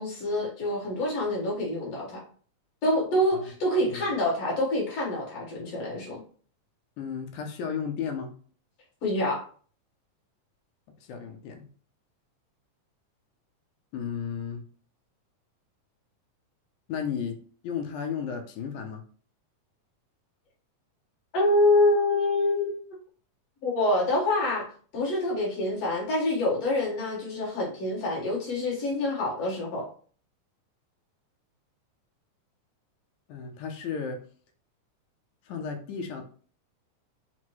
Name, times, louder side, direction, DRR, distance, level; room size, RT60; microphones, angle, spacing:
voice 1, 0.0-2.2 2.8-6.2 9.0-9.4 21.3-23.0 23.6-24.7 24.9-29.9, left 1 dB, 60° left, -4 dB, 2.2 m, -26 dB
voice 2, 7.0-8.3 11.0-11.6 13.9-14.6 16.9-17.4 17.6-19.0 33.3-34.2 35.5-36.2, left 7 dB, 75° left, 4 dB, 2.0 m, -34 dB
5.9 x 2.1 x 3.0 m, 0.43 s
omnidirectional pair, 3.6 m